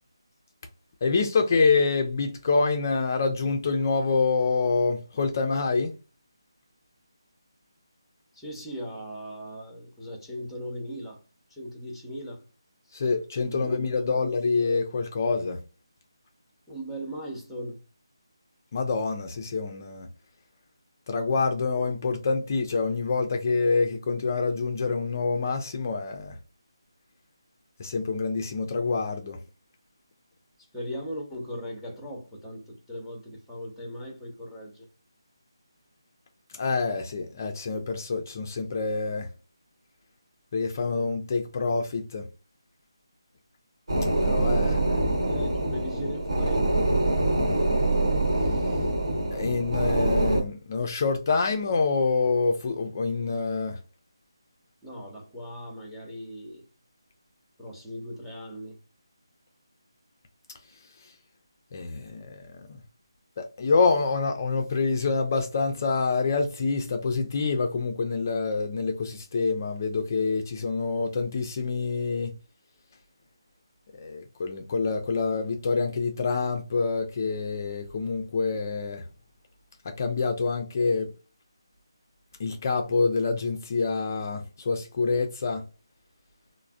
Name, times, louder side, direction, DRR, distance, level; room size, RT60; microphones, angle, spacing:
voice 1, 1.0-5.9 12.9-15.6 18.7-20.1 21.1-26.3 27.8-29.4 36.5-39.3 40.5-42.3 44.2-45.0 49.3-53.8 61.7-62.7 63.4-72.3 74.0-79.1 79.9-81.1 82.4-85.6, left 4 dB, 35° left, 0.4 m, -26 dB
voice 2, 8.3-11.2 11.5-12.4 13.4-14.2 16.7-17.8 30.7-34.8 44.6-46.7 54.8-56.6 57.6-58.8, equal, ahead, 0.7 m, -38 dB
sound 1, 43.9-50.4, right 2 dB, 75° right, 1.0 m, -25 dB
3.2 x 2.0 x 2.4 m
figure-of-eight pair, 160°, 3 cm